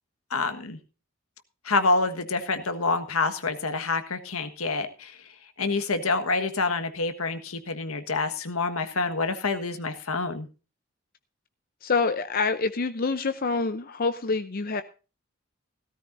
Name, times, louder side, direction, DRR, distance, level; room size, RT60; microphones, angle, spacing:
voice 1, 0.3-0.8 1.6-5.2 5.6-10.5, left 3 dB, 80° left, 9 dB, 1.5 m, -27 dB
voice 2, 11.8-14.8, left 4 dB, 45° left, 10 dB, 0.6 m, -26 dB
17.0 x 13.5 x 2.6 m, 0.32 s
head